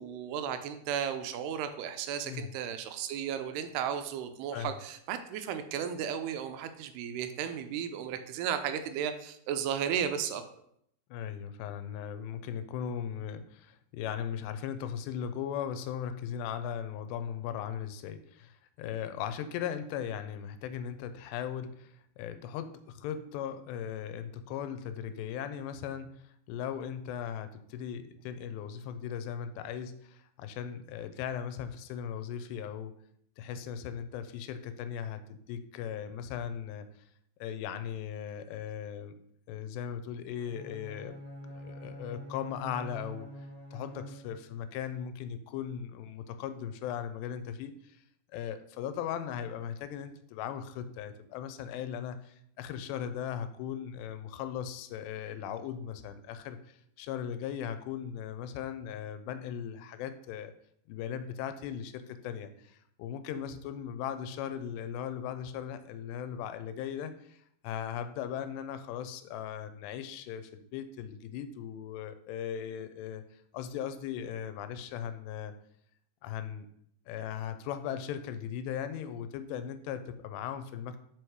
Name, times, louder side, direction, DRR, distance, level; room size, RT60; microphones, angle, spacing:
voice 1, 0.0-10.4, right 8 dB, 80° right, 8 dB, 2.5 m, -34 dB
voice 2, 11.1-32.9 33.4-36.9 37.4-39.2 39.5-41.2 41.4-43.3 43.7-48.0 48.3-60.5 60.9-75.5 76.2-76.7 77.1-81.0, left 9 dB, 90° left, 11 dB, 2.8 m, -38 dB
Bowed string instrument, 40.4-44.6, equal, 30° right, 1.8 m, -45 dB
6.4 x 5.2 x 4.6 m, 0.70 s
omnidirectional pair, 4.8 m